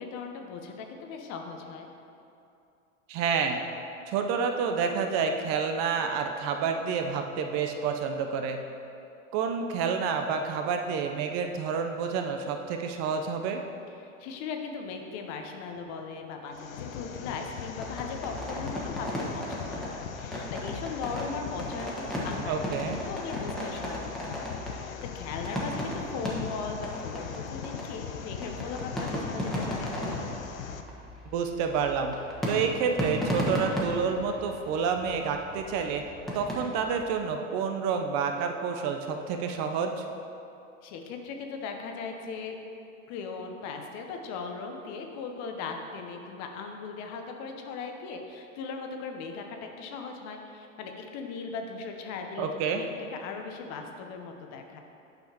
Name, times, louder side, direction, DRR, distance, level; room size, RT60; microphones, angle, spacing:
voice 1, 0.0-1.9 14.0-29.9 40.8-42.6 43.1-54.8, left 5 dB, 45° left, 4 dB, 0.8 m, -38 dB
voice 2, 3.1-3.6 4.1-8.6 9.3-13.6 22.5-23.0 31.3-32.2 32.5-36.0 36.3-40.0 52.4-52.8, right 6 dB, 45° right, 5 dB, 0.6 m, -29 dB
sound 1, 16.5-30.8, left 7 dB, 85° left, 0.5 m, -40 dB
sound 2, 17.8-37.2, equal, ahead, 1.4 m, -36 dB
9.0 x 5.5 x 2.9 m, 2.7 s
hypercardioid pair, 90°, 39 cm